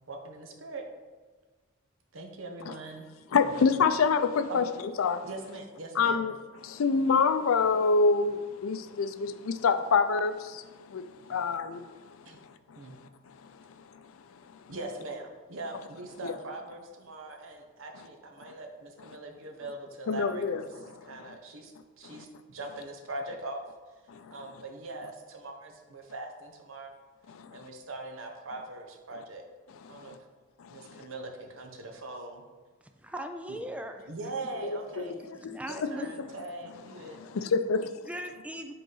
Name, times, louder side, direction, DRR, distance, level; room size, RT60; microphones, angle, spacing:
voice 1, 0.1-0.9 2.1-3.0 3.4-3.5 4.5-4.7 5.2-6.2 11.3-11.4 12.2-12.4 12.8-13.0 14.7-23.6 24.3-27.1 27.5-29.4 29.9-30.2 30.7-32.4 33.5-33.6 34.1-35.1 35.7-37.2, right 2 dB, 75° right, 3 dB, 0.9 m, -41 dB
voice 2, 3.3-4.6 5.0-5.2 6.0-6.3 6.6-11.8 16.2-16.3 20.1-20.6 21.3-21.4 22.0-22.1 24.1-24.3 27.3-27.6 30.0-30.1 30.7-30.8 34.6-35.6 37.3-37.9, left 5 dB, 90° left, 10 dB, 0.4 m, -26 dB
voice 3, 33.0-34.1 35.1-35.2 35.5-36.1 38.1-38.7, right 1 dB, 5° right, 6 dB, 0.4 m, -39 dB
7.7 x 3.9 x 3.9 m, 1.3 s
head